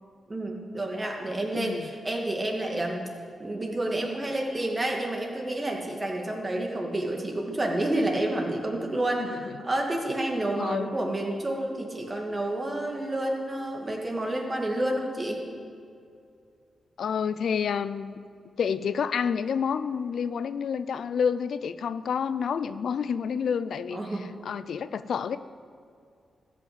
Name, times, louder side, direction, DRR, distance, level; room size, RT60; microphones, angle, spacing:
voice 1, 0.3-3.1 3.4-15.4 23.9-24.3, right 1 dB, 30° right, 0 dB, 2.3 m, -29 dB
voice 2, 1.5-1.9 9.3-9.4 10.6-10.9 17.0-18.2 18.6-24.0 24.4-25.4, left 7 dB, 75° left, 14 dB, 0.4 m, -29 dB
14.0 x 5.9 x 8.0 m, 2.4 s
cardioid pair, 65°, 0 cm